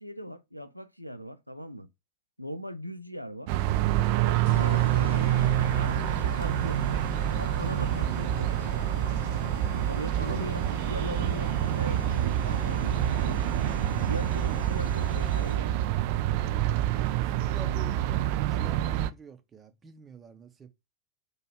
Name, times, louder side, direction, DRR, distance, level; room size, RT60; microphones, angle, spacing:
voice 1, 0.0-1.9 2.4-3.5 4.2-7.0 7.3-8.9 9.7-13.4 13.9-15.9, equal, 90° left, 0.4 m, -40 dB
sound 1, 3.5-19.1, right 13 dB, 45° right, 0.3 m, -27 dB
sound 2, 4.4-15.8, left 7 dB, 55° left, 0.8 m, -41 dB
voice 2, 16.9-18.2 18.5-20.7, right 5 dB, 20° right, 0.7 m, -47 dB
4.8 x 2.3 x 4.7 m
figure-of-eight pair, 90°, 0 cm